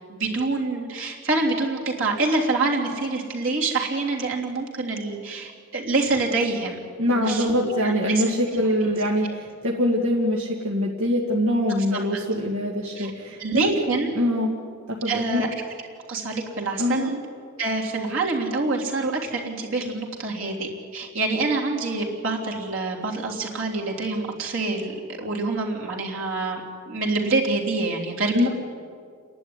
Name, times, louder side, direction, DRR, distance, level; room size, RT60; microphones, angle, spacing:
voice 1, 0.1-6.8 7.1-8.2 8.5-8.6 13.0-13.1 13.4-14.1 15.1-15.5 16.1-17.2 17.6-24.9 25.2-26.6 26.9-28.5, right 3 dB, 65° right, -2 dB, 3.5 m, -26 dB
voice 2, 7.0-13.6 14.2-14.6 14.9-15.4 16.8-17.1 28.3-28.5, left 1 dB, 80° right, -2 dB, 2.1 m, -24 dB
30.0 x 11.5 x 9.7 m, 2.2 s
head